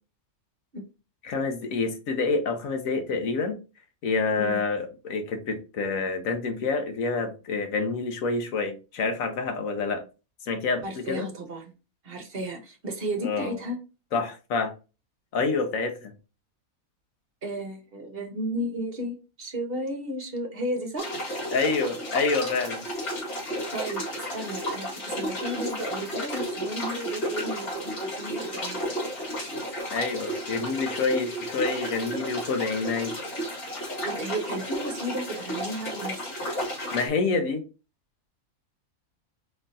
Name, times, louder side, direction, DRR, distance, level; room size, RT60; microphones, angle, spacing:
voice 1, 1.2-3.6 4.0-10.0 10.4-11.3 13.2-13.5 14.1-14.7 15.3-16.1 21.5-22.8 29.9-33.1 36.9-37.6, left 4 dB, 70° left, 6 dB, 1.3 m, -27 dB
voice 2, 10.8-11.7 12.0-13.8 17.4-21.1 23.7-29.0 34.0-36.4, right 1 dB, 45° right, 4 dB, 1.2 m, -34 dB
sound 1, 21.0-37.1, equal, 85° left, 2.5 m, -33 dB
4.2 x 3.8 x 2.7 m, 0.31 s
omnidirectional pair, 1.5 m